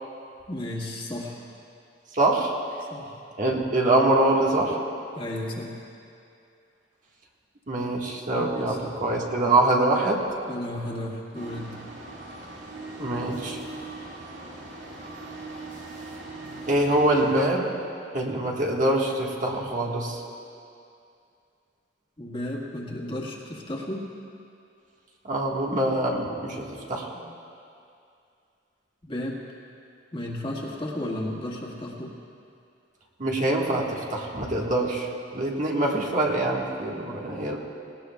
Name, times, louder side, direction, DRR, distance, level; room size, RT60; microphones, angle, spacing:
voice 1, 0.5-1.4 2.9-3.2 5.1-5.8 8.4-8.8 10.5-11.8 22.2-24.1 29.0-29.4 30.1-32.1, left 1 dB, 30° left, -3 dB, 1.7 m, -33 dB
voice 2, 2.1-2.5 3.4-4.8 7.7-10.3 13.0-13.6 16.7-17.8 18.1-20.2 25.2-27.2 33.2-37.6, right 2 dB, 45° right, -2 dB, 1.6 m, -24 dB
sound 1, 11.3-17.4, right 2 dB, 85° right, 2.0 m, -40 dB
19.0 x 18.5 x 2.3 m, 2.5 s
head